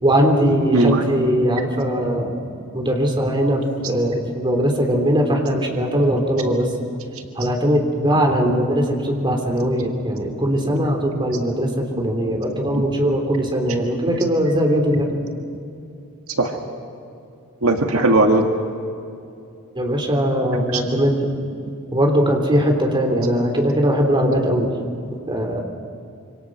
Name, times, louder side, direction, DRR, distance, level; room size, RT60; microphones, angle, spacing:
voice 1, 0.0-2.3 2.7-6.7 7.4-15.2 19.8-21.2 21.9-24.7 25.3-25.6, equal, 25° right, 2 dB, 3.4 m, -20 dB
voice 2, 0.7-1.0 13.7-13.8 15.0-15.1 16.4-16.6 17.6-18.5 20.7-20.8, right 2 dB, 75° right, 3 dB, 1.9 m, -18 dB
26.5 x 26.0 x 6.3 m, 2.6 s
head